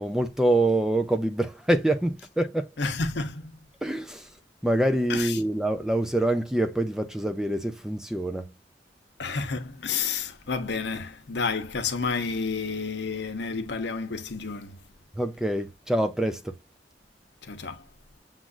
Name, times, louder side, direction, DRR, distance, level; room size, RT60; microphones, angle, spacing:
voice 1, 0.0-2.7 3.8-4.3 4.6-8.5 15.1-16.6, right 1 dB, 5° right, 0.5 m, -25 dB
voice 2, 2.8-3.7 5.1-5.4 9.2-14.8 17.4-17.9, left 4 dB, 70° left, 0.9 m, -30 dB
7.4 x 2.5 x 2.4 m
head